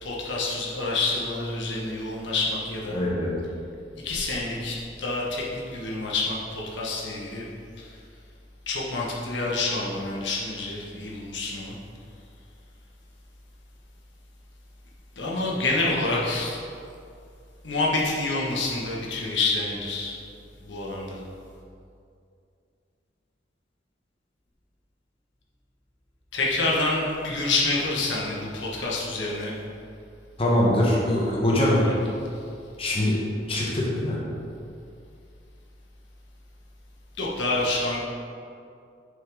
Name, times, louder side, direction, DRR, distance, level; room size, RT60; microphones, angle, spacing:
voice 1, 0.0-3.0 4.0-7.4 7.8-8.0 8.7-11.7 15.2-16.6 17.6-20.1 20.6-21.2 26.3-29.5 31.8-32.0 32.3-32.4 37.2-38.0, left 2 dB, 75° left, -3 dB, 1.3 m, -28 dB
voice 2, 2.9-3.3 30.4-31.8 32.8-33.2 33.5-34.2, left 1 dB, 30° left, -4 dB, 1.2 m, -23 dB
6.4 x 5.8 x 4.9 m, 2.4 s
head